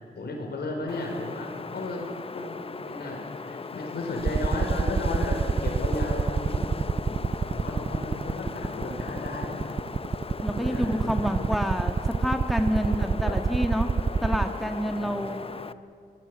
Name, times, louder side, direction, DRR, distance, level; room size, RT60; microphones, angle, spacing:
voice 1, 0.1-2.1 2.3-6.7 7.0-9.8 10.5-11.5 12.8-13.6 15.0-15.4, left 2 dB, 80° left, 2 dB, 5.0 m, -34 dB
Wind, 0.9-15.7, left 4 dB, 35° left, 0.7 m, -38 dB
sound 1, 4.3-14.4, right 5 dB, 35° right, 0.5 m, -24 dB
voice 2, 10.4-13.9 14.2-15.4, equal, ahead, 5 dB, 1.8 m, -28 dB
24.0 x 18.5 x 9.0 m, 2.3 s
cardioid pair, 80°, 17 cm